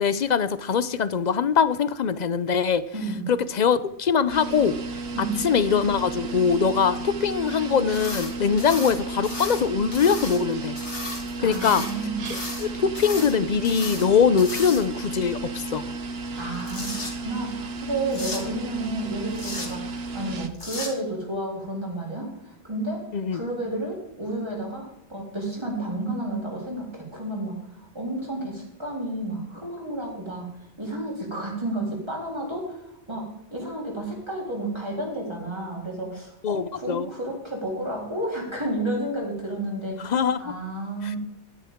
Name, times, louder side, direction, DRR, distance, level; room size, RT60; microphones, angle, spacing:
voice 1, 0.0-2.9 3.3-4.8 5.4-10.8 11.4-11.8 12.3-15.8 23.1-23.4 36.4-37.1 40.0-40.5 41.0-41.1, left 6 dB, 50° left, 15 dB, 0.5 m, -22 dB
voice 2, 2.9-3.3 5.1-5.4 11.4-12.3 16.4-23.0 23.3-30.5 30.8-32.8 33.1-40.0 40.4-41.2, right 1 dB, 20° right, -2 dB, 3.8 m, -31 dB
sound 1, 4.3-20.5, right 3 dB, 60° right, 1.2 m, -33 dB
sound 2, 7.9-8.3 8.6-9.6 9.9-10.4 10.8-11.9 12.2-12.6 12.9-13.3 13.6-14.1 14.4-15.0 16.4-17.1 18.1-18.4 19.3-19.7 20.5-20.9, left 2 dB, 70° left, 2.9 m, -35 dB
13.0 x 10.0 x 3.6 m, 0.82 s
omnidirectional pair, 1.2 m